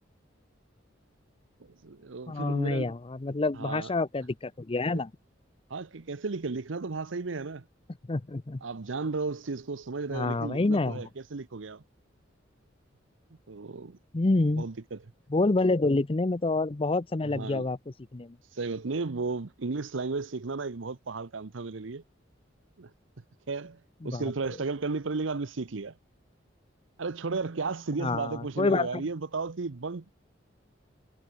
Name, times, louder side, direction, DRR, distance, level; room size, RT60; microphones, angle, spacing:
voice 1, 1.6-2.9 3.6-3.9 5.7-7.6 8.6-11.8 13.5-14.0 14.5-15.0 17.2-17.7 18.5-22.0 22.8-22.9 23.5-23.8 24.0-26.0 27.0-30.1, right 4 dB, 80° right, 0.8 m, -34 dB
voice 2, 2.3-5.1 8.1-8.6 10.1-11.0 14.1-14.7 15.3-17.8 18.1-18.4 24.0-24.2 28.0-29.0, left 2 dB, 30° left, 0.6 m, -27 dB
head